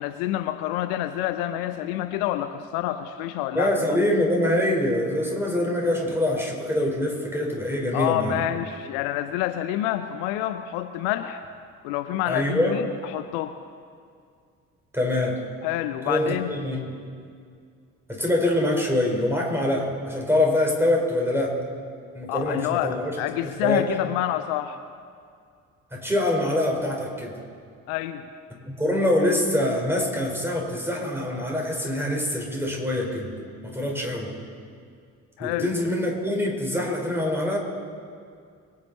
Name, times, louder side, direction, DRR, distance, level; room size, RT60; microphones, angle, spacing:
voice 1, 0.0-4.0 7.9-11.4 11.8-13.6 15.6-16.5 22.3-24.8 27.9-28.3 35.4-35.7, left 12 dB, 65° left, 11 dB, 0.7 m, -28 dB
voice 2, 3.5-8.4 12.3-12.8 14.9-15.4 16.1-16.8 18.1-21.6 22.1-23.2 23.4-23.8 25.9-27.4 28.6-33.3 33.6-34.3 35.4-37.6, left 1 dB, 5° right, -1 dB, 4.3 m, -24 dB
24.0 x 9.7 x 4.1 m, 2.3 s
figure-of-eight pair, 45°, 41 cm